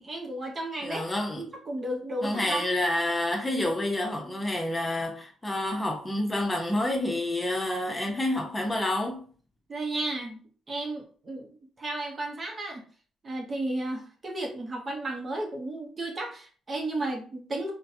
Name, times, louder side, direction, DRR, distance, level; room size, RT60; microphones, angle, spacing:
voice 1, 0.0-1.0 1.4-2.6 9.7-12.8 13.2-17.7, right 2 dB, 35° right, 0.8 m, -33 dB
voice 2, 0.8-1.4 2.2-9.3, left 1 dB, 15° left, 0.8 m, -28 dB
3.9 x 2.2 x 2.7 m
cardioid pair, 90°, 0 cm